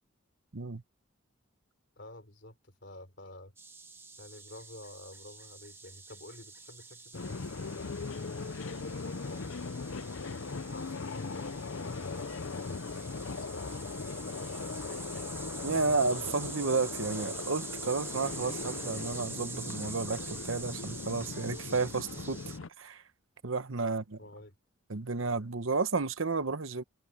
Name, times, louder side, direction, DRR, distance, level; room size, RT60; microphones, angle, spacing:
voice 1, 2.0-3.5 4.2-8.5 9.0-10.0 10.7-15.3 23.8-23.9 24.2-24.6, left 1 dB, 55° left, 3.7 m, -50 dB
sound 1, 3.6-22.6, right 4 dB, 10° right, 1.1 m, -46 dB
sound 2, 7.1-22.7, left 4 dB, 75° left, 0.7 m, -39 dB
voice 2, 15.6-22.4 22.8-23.0 23.4-24.0 24.9-26.8, right 4 dB, 75° right, 1.1 m, -32 dB
head